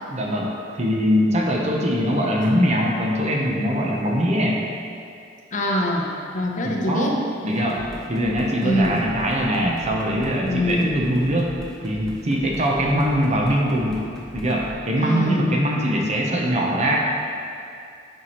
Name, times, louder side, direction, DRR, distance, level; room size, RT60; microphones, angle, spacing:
voice 1, 0.0-0.5 0.8-4.6 6.6-7.1 7.4-7.8 8.1-11.6 11.8-14.0 14.3-17.0, equal, 40° right, -1 dB, 0.8 m, -22 dB
voice 2, 5.5-7.2 8.6-9.0 10.4-11.0 15.0-15.5, left 1 dB, 45° left, -1 dB, 0.8 m, -23 dB
sound 1, 7.5-14.7, left 1 dB, 5° left, 0.9 m, -39 dB
9.7 x 4.7 x 3.1 m, 2.4 s
head